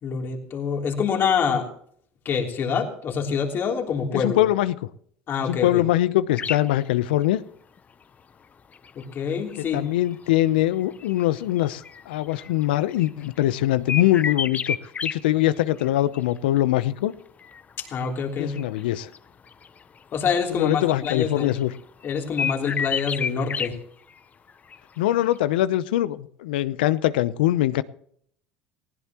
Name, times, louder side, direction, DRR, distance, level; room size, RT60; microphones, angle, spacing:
voice 1, 0.0-1.7 2.2-4.4 5.3-5.8 8.9-9.8 17.8-18.6 20.1-21.6 22.0-23.8, left 6 dB, 45° left, 2 dB, 3.4 m, -26 dB
voice 2, 4.1-4.8 5.4-7.4 9.7-14.8 15.0-17.1 18.4-19.1 20.5-21.7 25.0-27.8, left 14 dB, 90° left, 16 dB, 0.7 m, -22 dB
sound 1, 6.4-6.7 7.8-7.9 8.7-13.4 13.9-15.1 15.4-15.9 16.1-16.6 17.4-19.2 19.4-20.0 20.3-20.4 20.6-21.8 22.0-23.7 24.1-24.2 24.5-25.0 25.2-25.4, left 6 dB, 30° left, 0.8 m, -31 dB
18.5 x 16.5 x 3.0 m, 0.64 s
supercardioid pair, 95°, 5 cm